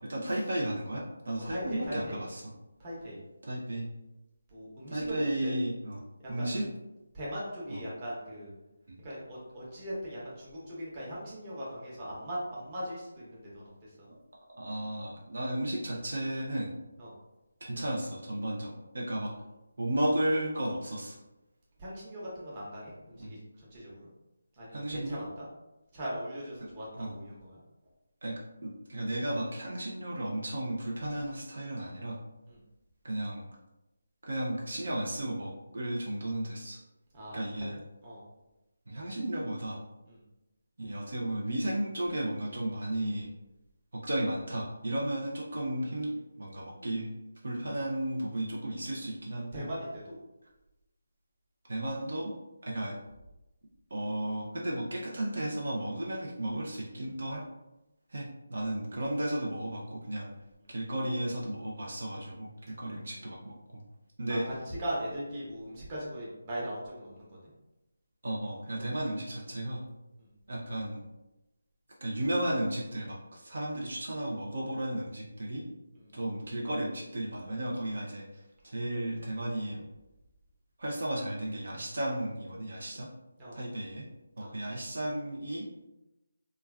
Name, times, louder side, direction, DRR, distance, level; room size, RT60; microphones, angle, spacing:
voice 1, 0.0-2.5 3.4-3.9 4.9-6.0 6.3-6.6 7.7-7.8 8.9-9.0 14.1-14.2 14.5-16.7 17.6-19.3 19.8-21.2 23.1-23.3 24.7-25.2 26.6-27.1 28.2-28.3 28.6-32.2 33.0-33.5 34.2-36.8 37.3-37.8 38.9-39.8 40.8-43.3 43.9-47.1 47.4-49.7 51.7-52.3 52.6-52.9 53.9-57.4 58.1-60.3 60.7-63.8 64.2-64.4 68.2-69.8 70.5-71.0 72.0-75.6 76.1-79.8 80.8-83.1 83.5-84.1 84.4-85.7, right 1 dB, 70° right, -3 dB, 0.6 m, -34 dB
voice 2, 1.5-2.2 2.8-3.2 4.5-5.5 6.4-6.5 7.1-8.5 9.0-13.9 17.0-17.1 21.8-23.4 23.7-24.1 24.6-25.4 25.9-27.6 32.5-32.6 37.1-37.4 38.0-38.2 40.1-40.2 49.5-50.2 64.3-64.4 64.7-67.5 70.2-70.3 76.0-76.1 83.4-83.6 84.4-84.5, equal, 25° right, -7 dB, 0.9 m, -39 dB
3.2 x 2.3 x 2.3 m, 0.98 s
figure-of-eight pair, 165°, 0 cm